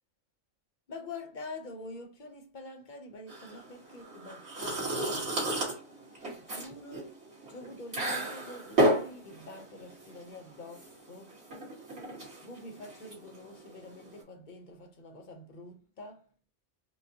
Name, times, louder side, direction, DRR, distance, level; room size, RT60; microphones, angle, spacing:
voice 1, 0.9-5.2 6.2-7.2 7.5-11.4 12.4-16.2, left 2 dB, 45° left, 0.7 m, -46 dB
sound 1, 3.3-14.2, right 1 dB, 55° right, 1.9 m, -33 dB
4.7 x 2.1 x 2.7 m
omnidirectional pair, 1.3 m